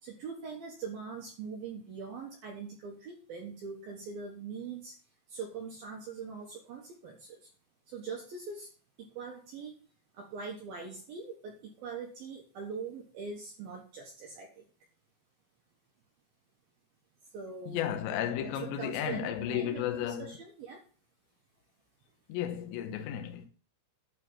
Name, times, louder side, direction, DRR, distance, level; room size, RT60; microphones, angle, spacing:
voice 1, 0.0-5.0 5.3-7.5 7.9-8.7 9.0-9.7 10.1-14.7 17.3-17.9 18.4-18.5 18.8-20.8, right 5 dB, 65° right, 2.6 m, -42 dB
voice 2, 17.7-20.3 22.3-23.5, left 10 dB, 75° left, 3.2 m, -33 dB
12.0 x 4.1 x 7.4 m
omnidirectional pair, 5.6 m